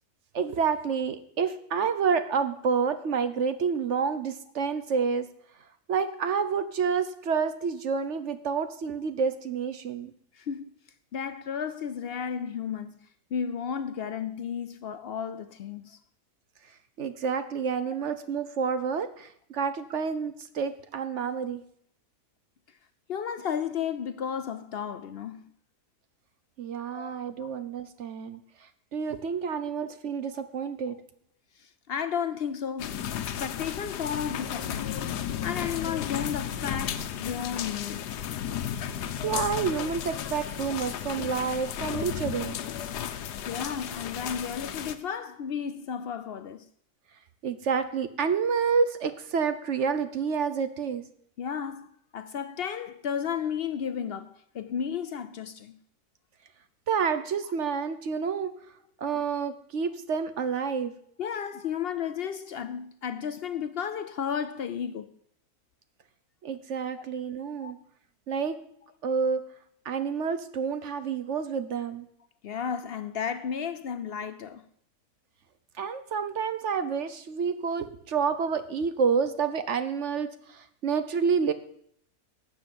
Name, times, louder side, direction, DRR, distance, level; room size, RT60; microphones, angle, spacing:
voice 1, 0.3-5.3 5.9-10.1 17.0-21.6 26.6-28.4 28.9-31.0 39.2-42.6 47.4-51.0 56.9-58.5 59.0-60.9 66.4-67.8 68.3-68.6 69.0-69.4 69.8-72.1 75.8-81.5, right 6 dB, 55° right, 1.0 m, -29 dB
voice 2, 10.3-10.7 11.1-13.0 13.3-16.0 23.1-25.5 26.9-27.5 31.6-35.2 35.4-38.1 43.4-46.6 51.4-55.8 61.2-65.1 67.6-67.7 72.4-74.6, left 7 dB, 70° left, 0.5 m, -33 dB
sound 1, 32.8-44.9, left 9 dB, 90° left, 1.4 m, -34 dB
12.5 x 7.2 x 7.8 m
omnidirectional pair, 1.7 m